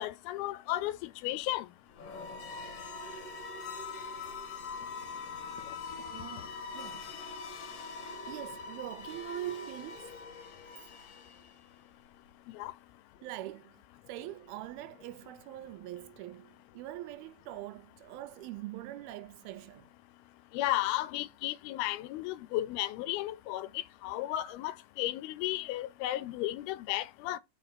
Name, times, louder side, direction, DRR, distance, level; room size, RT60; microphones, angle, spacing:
voice 1, 0.0-1.7 12.5-12.7 20.5-23.7 24.0-27.4, left 15 dB, 80° left, 2.5 m, -34 dB
sound 1, 1.9-11.8, left 4 dB, 55° left, 1.8 m, -43 dB
voice 2, 6.0-7.1 8.3-10.1 13.2-13.8 14.1-19.9, right 15 dB, 80° right, 2.4 m, -43 dB
5.0 x 4.9 x 5.8 m
omnidirectional pair, 4.5 m